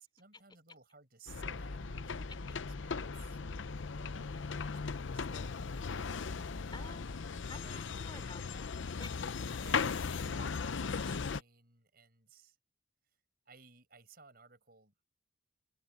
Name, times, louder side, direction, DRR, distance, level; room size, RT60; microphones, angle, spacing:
voice 1, 0.0-2.3 2.8-4.7 5.1-5.7 6.7-7.0 7.5-8.5 9.6-12.6 13.5-15.1, right 4 dB, 50° right, 6.5 m, -59 dB
sound 1, 1.3-11.4, left 5 dB, 75° left, 0.6 m, -38 dB
sound 2, 1.4-7.1, equal, 45° left, 2.5 m, -49 dB
voice 2, 6.7-9.2, left 3 dB, 25° left, 3.4 m, -52 dB
head